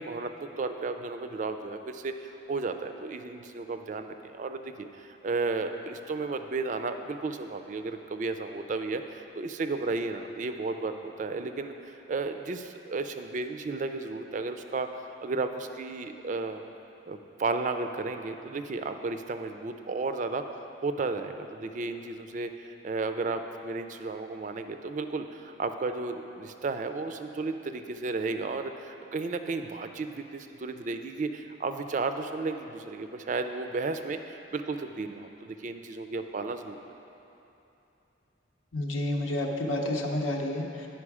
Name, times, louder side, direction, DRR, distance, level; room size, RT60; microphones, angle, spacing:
voice 1, 0.0-16.6 17.1-20.4 20.8-36.8, right 3 dB, 40° right, 7 dB, 0.3 m, -33 dB
voice 2, 38.7-40.9, left 1 dB, 85° left, 2 dB, 0.8 m, -30 dB
9.7 x 5.7 x 4.8 m, 2.9 s
head